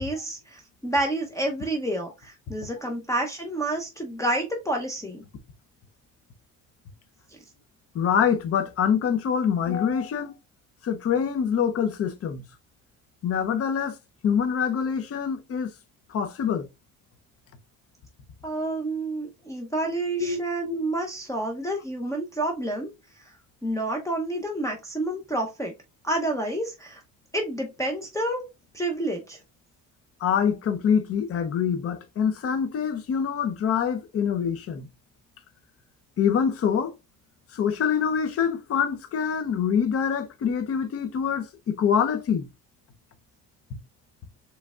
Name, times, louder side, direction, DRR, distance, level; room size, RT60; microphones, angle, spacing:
voice 1, 0.0-5.2 18.4-22.9 23.6-25.7 26.0-27.0 27.3-28.5 28.7-29.4, right 1 dB, 10° left, 0.7 m, -29 dB
voice 2, 7.9-10.4 10.8-12.4 13.2-14.0 14.2-15.7 16.1-16.7 20.2-20.8 30.2-34.9 36.2-36.9 37.5-42.5, left 7 dB, 40° left, 0.7 m, -25 dB
5.1 x 3.3 x 2.4 m
cardioid pair, 110°, 35 cm